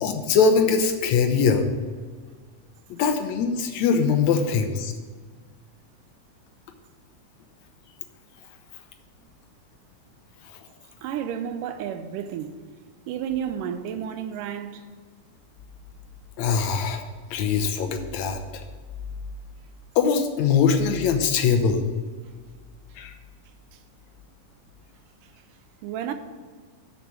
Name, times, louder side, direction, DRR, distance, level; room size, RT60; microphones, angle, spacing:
voice 1, 0.0-1.7 2.9-4.9 16.4-17.0 17.3-18.4 20.0-21.8 23.0-23.1, left 5 dB, 70° left, 1.8 m, -22 dB
voice 2, 11.0-12.6 13.1-14.9 25.8-26.1, right 9 dB, 80° right, 2.2 m, -31 dB
7.0 x 6.5 x 7.3 m
omnidirectional pair, 3.8 m